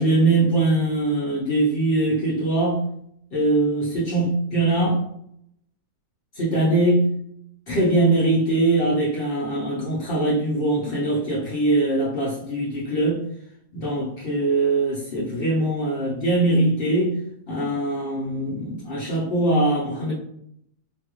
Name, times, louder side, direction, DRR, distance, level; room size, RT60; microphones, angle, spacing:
voice 1, 0.0-2.8 3.3-5.0 6.3-7.1 7.7-13.2 13.7-17.2 17.5-20.1, right 2 dB, 70° left, -7 dB, 0.5 m, -22 dB
3.3 x 2.3 x 2.9 m, 0.71 s
omnidirectional pair, 1.9 m